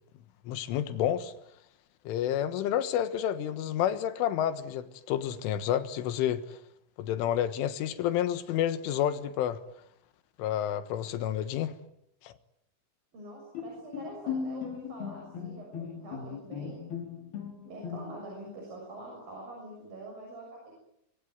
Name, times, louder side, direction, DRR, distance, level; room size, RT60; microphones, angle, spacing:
voice 1, 0.5-1.3 2.1-6.6 7.0-9.6 10.4-11.7 12.2-12.3, left 10 dB, 85° left, 4.0 m, -29 dB
voice 2, 13.1-16.8 17.7-20.8, right 2 dB, 50° right, 8.5 m, -45 dB
Bowed string instrument, 13.5-18.4, left 6 dB, 55° left, 6.3 m, -38 dB
24.5 x 24.5 x 9.4 m
omnidirectional pair, 5.5 m